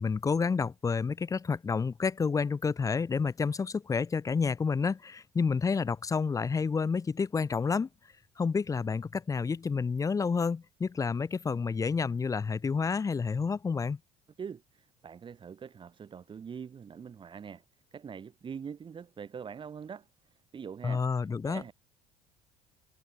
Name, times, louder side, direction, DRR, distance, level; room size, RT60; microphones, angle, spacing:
voice 1, 0.0-7.9 8.4-14.0 20.8-21.6, left 5 dB, 20° left, 0.6 m, -29 dB
voice 2, 14.4-17.6 17.9-21.7, right 7 dB, 30° right, 1.0 m, -44 dB
supercardioid pair, 85°, 16 cm